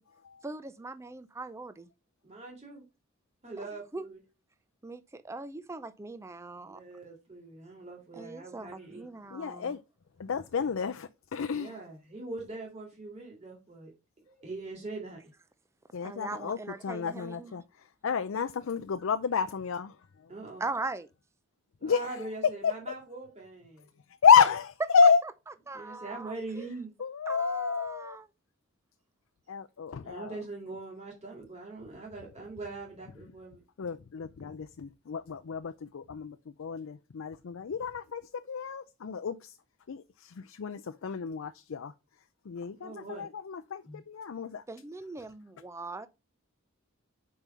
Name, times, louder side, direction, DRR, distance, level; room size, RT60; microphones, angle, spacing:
voice 1, 0.4-1.9 3.6-3.7 3.9-4.1 4.8-6.8 8.1-9.8 16.0-17.6 20.6-21.1 25.7-26.7 27.3-28.3 44.7-46.1, right 3 dB, 15° right, 0.4 m, -40 dB
voice 2, 2.2-2.8 3.4-4.2 6.5-9.0 11.5-13.9 14.3-15.2 20.3-20.6 21.8-23.9 25.7-26.9 30.0-33.6 42.7-43.3 43.8-44.0, right 2 dB, 30° right, 2.2 m, -42 dB
voice 3, 9.3-9.8 10.2-11.7 15.9-16.6 16.8-17.6 18.0-19.9 21.8-22.0 22.6-22.7 24.2-25.2 27.0-28.2 29.5-30.3 33.8-38.2 38.5-39.5 39.9-41.9 42.5-44.6, left 6 dB, 65° left, 0.4 m, -29 dB
5.3 x 4.7 x 5.5 m
head